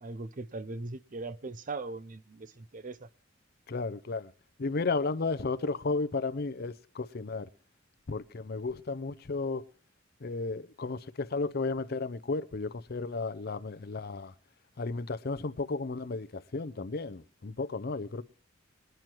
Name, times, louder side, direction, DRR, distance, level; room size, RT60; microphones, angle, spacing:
voice 1, 0.0-3.1, right 3 dB, 40° right, 0.6 m, -40 dB
voice 2, 3.7-4.3 4.6-7.5 8.1-9.6 10.2-14.3 14.8-18.2, left 3 dB, 55° left, 0.6 m, -33 dB
22.0 x 9.2 x 4.5 m
head